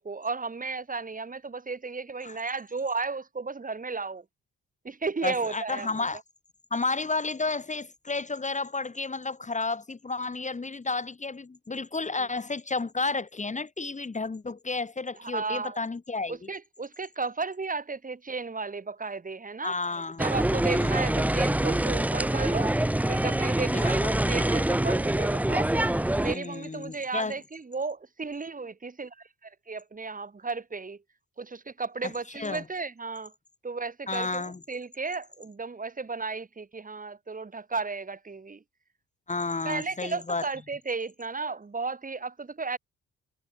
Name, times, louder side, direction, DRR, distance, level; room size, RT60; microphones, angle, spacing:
voice 1, 0.0-4.2 4.8-5.9 15.2-15.8 16.3-19.7 20.2-22.8 23.1-25.9 26.2-29.1 29.4-31.0 31.4-33.3 33.6-38.6 39.6-42.8, right 4 dB, 25° right, 4.2 m, -34 dB
voice 2, 5.2-6.2 6.7-16.5 19.6-20.3 20.7-21.2 23.7-24.1 26.2-27.3 32.3-32.6 34.1-34.6 39.3-40.5, left 3 dB, 25° left, 2.5 m, -32 dB
sound 1, 20.2-26.3, right 1 dB, 5° right, 0.9 m, -25 dB
cardioid pair, 90°, 30 cm